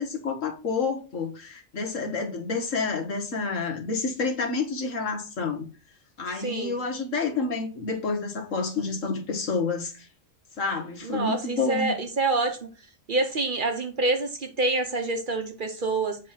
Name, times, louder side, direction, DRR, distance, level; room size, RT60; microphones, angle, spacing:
voice 1, 0.0-5.7 6.2-10.1 10.6-11.9, left 4 dB, 75° left, 1.9 m, -29 dB
voice 2, 6.4-6.8 11.0-12.7 13.1-16.2, right 3 dB, 45° right, 1.0 m, -27 dB
7.5 x 3.3 x 5.7 m
omnidirectional pair, 1.3 m